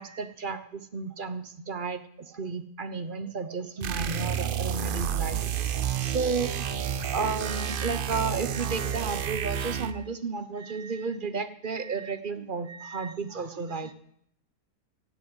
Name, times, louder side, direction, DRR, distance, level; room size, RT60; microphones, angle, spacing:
voice 1, 0.0-5.4 6.0-6.7 7.1-13.9, right 4 dB, 35° right, 10 dB, 1.0 m, -33 dB
sound 1, 3.8-10.1, right 8 dB, 60° right, 0.5 m, -30 dB
16.0 x 7.1 x 9.2 m, 0.71 s
omnidirectional pair, 1.7 m